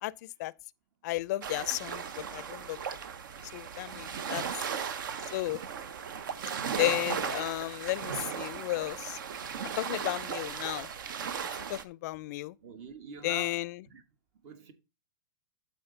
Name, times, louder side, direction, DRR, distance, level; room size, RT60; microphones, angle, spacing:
voice 1, 0.0-0.5 1.0-2.8 3.5-4.4 5.3-5.6 6.8-9.2 9.6-10.9 11.7-12.6 13.2-13.7, left 18 dB, 55° left, 0.4 m, -33 dB
sound 1, 1.4-11.8, right 7 dB, 70° right, 0.8 m, -37 dB
voice 2, 4.7-5.0 5.4-5.5 12.6-14.0 14.4-14.7, right 5 dB, 50° right, 1.3 m, -47 dB
11.5 x 4.2 x 3.8 m
hypercardioid pair, 110°, 11 cm